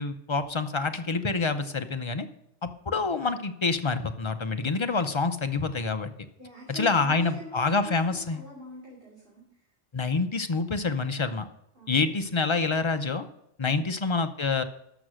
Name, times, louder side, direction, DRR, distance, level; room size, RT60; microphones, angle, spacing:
voice 1, 0.0-2.3 2.6-6.1 6.7-8.4 9.9-11.5 11.9-13.3 13.6-14.6, left 4 dB, 35° left, 8 dB, 0.5 m, -27 dB
voice 2, 6.4-9.4 11.7-12.1, left 1 dB, 45° right, -6 dB, 2.9 m, -43 dB
13.0 x 6.0 x 6.2 m, 0.79 s
omnidirectional pair, 1.2 m